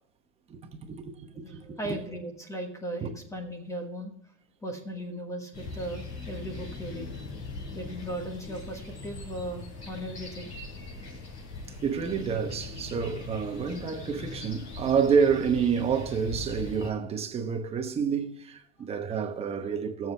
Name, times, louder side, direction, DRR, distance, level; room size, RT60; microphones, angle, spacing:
voice 1, 0.5-1.8 3.0-3.1 11.8-20.1, right 6 dB, 15° right, 1.0 m, -28 dB
voice 2, 1.4-4.1 4.6-7.1 7.7-10.5, right 1 dB, 10° left, 1.4 m, -37 dB
sound 1, 5.5-16.9, left 3 dB, 50° left, 5.6 m, -40 dB
20.5 x 7.4 x 3.4 m
supercardioid pair, 160°, 35 cm